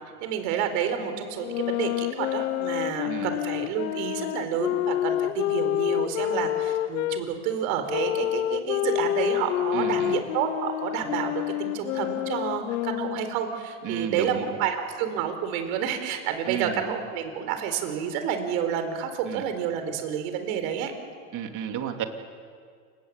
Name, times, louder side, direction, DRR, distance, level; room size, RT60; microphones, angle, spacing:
voice 1, 0.2-20.9, right 8 dB, 65° right, 8 dB, 4.3 m, -29 dB
sound 1, 1.4-7.2 7.9-13.4, left 13 dB, 85° left, 0.8 m, -28 dB
voice 2, 9.7-10.2 13.8-14.7 16.5-16.8 19.2-19.4 21.3-22.0, right 9 dB, 45° right, 5 dB, 2.9 m, -32 dB
28.5 x 17.5 x 8.3 m, 2.1 s
hypercardioid pair, 105°, 44 cm